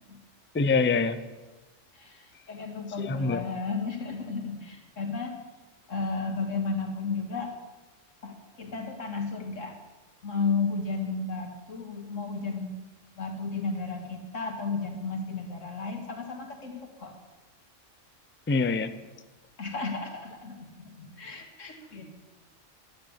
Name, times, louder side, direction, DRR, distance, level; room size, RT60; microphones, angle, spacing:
voice 1, 0.5-1.2 3.0-3.4 18.5-18.9, left 4 dB, 20° left, 11 dB, 0.3 m, -25 dB
voice 2, 1.9-5.3 5.9-7.5 8.2-9.7 10.2-12.7 13.2-17.1 19.6-22.1, left 4 dB, 75° left, 3 dB, 2.3 m, -33 dB
11.0 x 10.5 x 7.3 m, 1.2 s
omnidirectional pair, 1.3 m